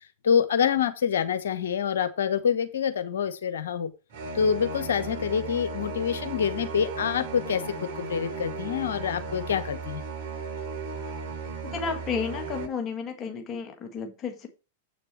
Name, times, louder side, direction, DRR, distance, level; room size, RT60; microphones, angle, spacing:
voice 1, 0.2-3.9 4.3-10.0, left 7 dB, 65° left, 11 dB, 1.1 m, -26 dB
sound 1, 4.1-12.6, right 4 dB, 50° right, 4.0 m, -36 dB
voice 2, 11.6-14.5, left 6 dB, 25° left, 5 dB, 1.6 m, -32 dB
8.0 x 6.6 x 4.4 m, 0.30 s
figure-of-eight pair, 95°, 0 cm